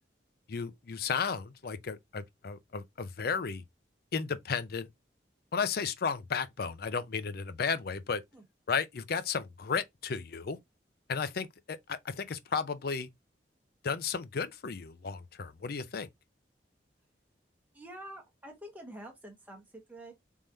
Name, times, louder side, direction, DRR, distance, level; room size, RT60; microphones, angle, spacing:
voice 1, 0.5-3.6 4.1-4.9 5.5-8.2 8.7-10.6 11.1-13.1 13.8-16.1, left 5 dB, 60° left, 0.5 m, -34 dB
voice 2, 17.7-20.1, right 1 dB, 10° right, 1.2 m, -47 dB
3.6 x 3.2 x 2.6 m
head